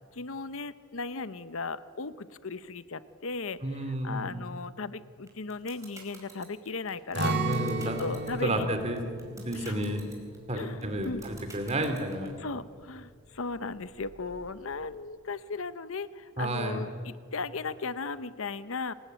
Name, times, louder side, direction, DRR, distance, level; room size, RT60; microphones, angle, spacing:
voice 1, 0.1-7.4 8.0-8.7 9.5-9.8 10.5-11.2 12.4-18.9, left 4 dB, 75° left, 14 dB, 0.8 m, -36 dB
voice 2, 3.6-4.4 7.5-8.0 8.3-9.0 9.4-10.0 10.5-12.4 16.4-16.8, right 1 dB, 30° right, 7 dB, 2.7 m, -31 dB
sound 1, 5.3-12.3, right 3 dB, 15° right, 4.9 m, -48 dB
Acoustic guitar, 7.1-13.0 13.4-13.5 14.0-14.5, right 2 dB, 55° right, 3.2 m, -36 dB
27.5 x 18.5 x 9.3 m, 2.1 s
head